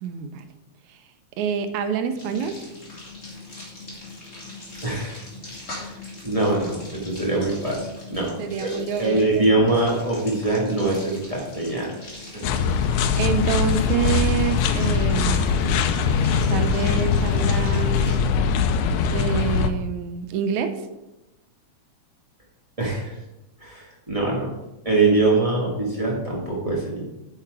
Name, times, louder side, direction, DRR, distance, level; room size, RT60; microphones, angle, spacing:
voice 1, 0.0-0.5 0.9-1.0 1.4-2.6 8.4-9.7 13.2-16.0 16.5-18.1 19.1-20.8, right 7 dB, 80° right, 8 dB, 2.0 m, -27 dB
sound 1, 2.2-18.2, left 2 dB, 25° left, 2.4 m, -40 dB
voice 2, 4.8-5.2 5.7-5.9 6.2-11.9 12.3-12.5 22.8-23.1 23.6-24.5 24.8-27.0, right 2 dB, 35° right, -4 dB, 0.5 m, -23 dB
sound 2, 12.4-19.7, left 6 dB, 85° left, 2.0 m, -21 dB
8.5 x 5.7 x 4.7 m, 0.97 s
omnidirectional pair, 3.4 m